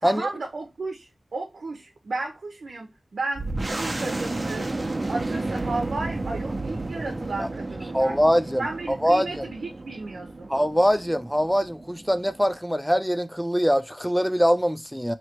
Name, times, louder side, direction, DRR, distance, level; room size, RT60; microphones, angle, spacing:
voice 1, 0.0-4.8 5.1-8.2 8.6-10.5, right 3 dB, 80° right, 0.8 m, -33 dB
sound 1, 3.4-12.6, right 2 dB, 35° right, 0.8 m, -32 dB
voice 2, 7.9-9.5 10.5-15.1, equal, ahead, 0.4 m, -23 dB
3.1 x 2.9 x 4.4 m
wide cardioid pair, 70°, 0 cm